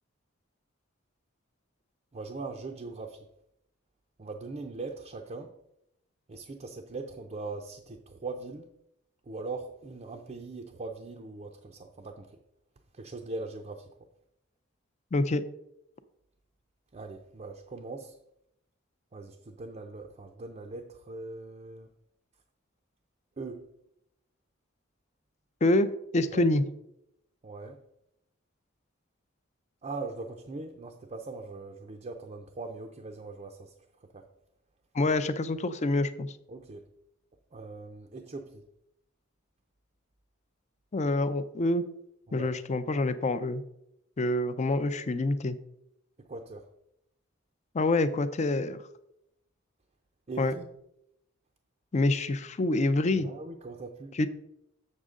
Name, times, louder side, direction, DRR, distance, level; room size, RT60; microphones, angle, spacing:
voice 1, 2.1-3.3 4.2-5.5 6.3-8.7 9.3-12.4 12.9-13.9 16.9-18.2 19.1-21.9 23.4-23.7 26.3-26.4 27.4-27.8 29.8-33.7 34.1-34.3 36.5-36.8 37.5-38.6 42.3-42.5 46.3-46.7 50.3-50.7 53.2-54.2, right 3 dB, 35° right, 4 dB, 0.5 m, -40 dB
voice 2, 15.1-15.4 25.6-26.6 34.9-36.3 40.9-41.8 42.3-43.6 44.2-45.6 47.7-48.8 50.4-50.5 51.9-53.3 54.1-54.3, left 2 dB, 35° left, 12 dB, 0.5 m, -26 dB
7.2 x 6.4 x 3.7 m, 0.81 s
head